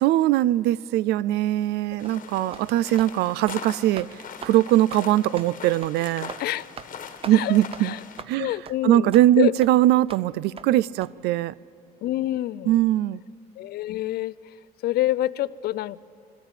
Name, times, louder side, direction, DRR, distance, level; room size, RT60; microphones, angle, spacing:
voice 1, 0.0-4.1 4.4-6.3 7.2-7.9 8.3-8.5 8.8-11.5 12.7-13.2, right 14 dB, 80° right, 22 dB, 0.4 m, -21 dB
sound 1, 2.0-8.2, left 7 dB, 50° left, 1.3 m, -41 dB
sound 2, 2.0-2.2 2.5-2.7 3.0-3.1 3.4-3.6 4.0-4.1 4.4-4.6 4.9-5.0 5.4-5.5 5.8-6.0 6.3-6.4 6.8-6.9 7.2-7.4 7.7-7.8 8.2-8.3 8.7-8.8 9.1-9.3 9.6-9.7 10.1-10.2 10.6-10.7 11.0-11.1, right 6 dB, 35° right, 0.7 m, -40 dB
voice 2, 7.3-8.0 8.4-9.1 9.4-9.5 12.0-12.8 13.6-14.3 14.8-16.0, left 15 dB, 65° left, 18 dB, 0.5 m, -27 dB
21.0 x 13.5 x 9.1 m, 2.5 s
cardioid pair, 110°, 17 cm